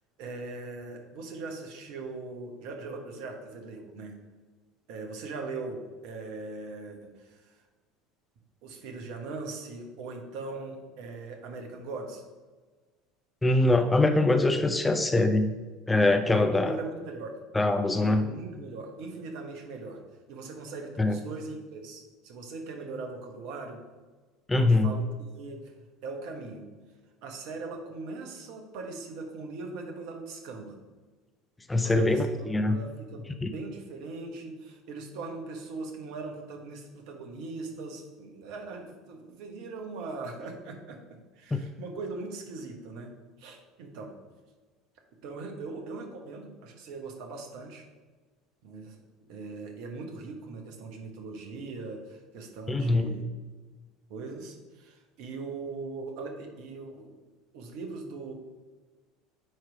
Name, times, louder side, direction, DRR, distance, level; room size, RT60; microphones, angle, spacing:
voice 1, 0.2-4.2 4.9-7.6 8.6-12.2 16.3-17.4 17.9-20.0 20.3-23.8 24.6-25.6 26.0-26.7 27.2-30.8 31.7-43.1 43.4-44.1 45.2-47.9 48.6-49.0 49.3-53.2 54.1-57.1 57.5-58.3, right 3 dB, 60° right, 3 dB, 1.2 m, -40 dB
voice 2, 13.4-15.5 15.9-16.8 17.5-18.3 21.0-21.2 24.5-24.9 31.7-32.8 33.4-33.5 41.5-41.6 52.7-53.1, left 2 dB, 15° left, 7 dB, 0.6 m, -23 dB
9.1 x 3.2 x 4.8 m, 1.3 s
figure-of-eight pair, 70°, 0 cm